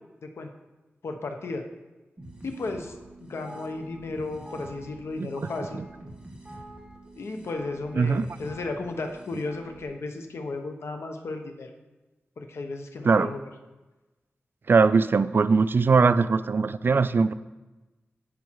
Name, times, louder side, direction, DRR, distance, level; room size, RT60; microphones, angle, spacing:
voice 1, 1.0-1.6 2.4-5.8 7.1-11.7 12.4-13.4, left 3 dB, 80° left, 5 dB, 1.1 m, -34 dB
sound 1, 2.2-9.8, right 1 dB, 20° right, 2.1 m, -45 dB
voice 2, 8.0-8.3 13.0-13.3 14.7-17.3, right 4 dB, 55° right, 14 dB, 0.4 m, -21 dB
10.0 x 7.3 x 4.7 m, 1.1 s
wide cardioid pair, 90°, 4 cm